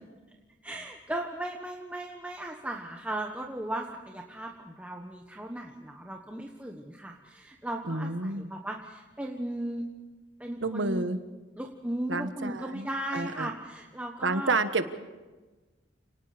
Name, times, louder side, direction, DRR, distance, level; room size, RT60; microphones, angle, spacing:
voice 1, 0.6-9.8 10.4-11.0 11.6-14.6, right 1 dB, 10° right, 1 dB, 1.3 m, -36 dB
voice 2, 7.9-8.5 10.6-11.2 12.1-13.5 14.2-14.9, right 3 dB, 80° right, 10 dB, 1.5 m, -30 dB
29.5 x 19.0 x 5.1 m, 1.2 s
head